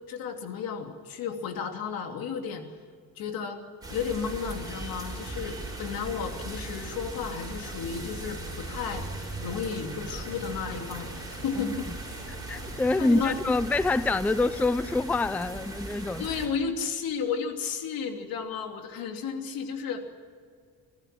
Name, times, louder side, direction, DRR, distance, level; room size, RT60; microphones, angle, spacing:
voice 1, 0.1-2.6 3.2-3.6 3.9-9.0 9.4-11.9 13.0-13.6 16.2-20.0, left 6 dB, 75° left, 4 dB, 3.0 m, -33 dB
sound 1, 3.8-16.5, right 2 dB, 10° right, 7.0 m, -38 dB
voice 2, 12.3-16.3, left 2 dB, 5° left, 16 dB, 0.4 m, -26 dB
25.5 x 15.0 x 7.6 m, 2.1 s
cardioid pair, 100°, 35 cm